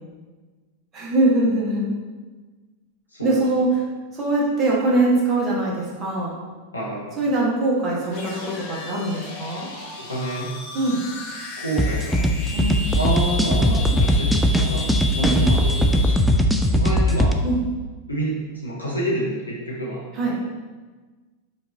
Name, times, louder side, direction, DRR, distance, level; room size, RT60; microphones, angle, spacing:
voice 1, 0.9-1.8 3.2-3.7 4.1-6.3 7.2-9.7 10.7-11.0 12.5-12.8 15.2-15.4 17.4-17.6 20.1-20.3, right 2 dB, 30° right, -5 dB, 1.2 m, -22 dB
voice 2, 3.1-3.4 6.7-7.2 10.0-10.5 11.6-12.3 12.9-16.1 16.7-17.3 18.1-20.0, right 1 dB, 80° left, -5 dB, 0.8 m, -28 dB
sound 1, 8.1-16.4, left 2 dB, 40° left, 0.9 m, -34 dB
sound 2, 11.8-17.3, equal, ahead, 0.3 m, -19 dB
5.0 x 2.6 x 4.0 m, 1.3 s
figure-of-eight pair, 90°, 0 cm